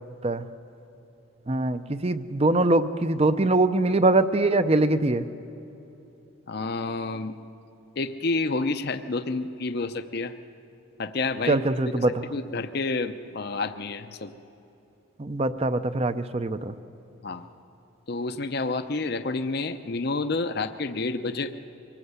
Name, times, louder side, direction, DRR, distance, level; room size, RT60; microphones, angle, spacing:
voice 1, 1.5-5.3 11.5-12.1 15.2-16.7, right 2 dB, 30° right, 12 dB, 0.6 m, -23 dB
voice 2, 6.5-7.4 8.0-10.3 11.0-11.6 12.0-14.3 17.2-17.4 18.1-21.5, left 3 dB, 50° left, 9 dB, 0.6 m, -29 dB
24.0 x 18.0 x 8.1 m, 3.0 s
head